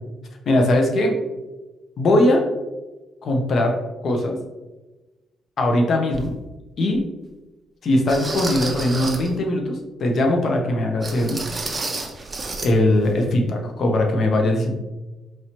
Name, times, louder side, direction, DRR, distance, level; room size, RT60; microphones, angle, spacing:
voice 1, 0.5-1.2 2.0-2.4 3.2-3.7 4.0-4.4 5.6-6.3 6.8-7.0 7.8-11.5 12.6-14.7, left 1 dB, 55° left, 2 dB, 0.8 m, -20 dB
sound 1, 6.1-6.3 6.9-7.0 8.1-9.3 11.0-12.7 13.0-13.2 13.6-13.7, right 2 dB, 25° right, 0.6 m, -30 dB
4.5 x 2.9 x 2.9 m, 1.1 s
cardioid pair, 90°, 0 cm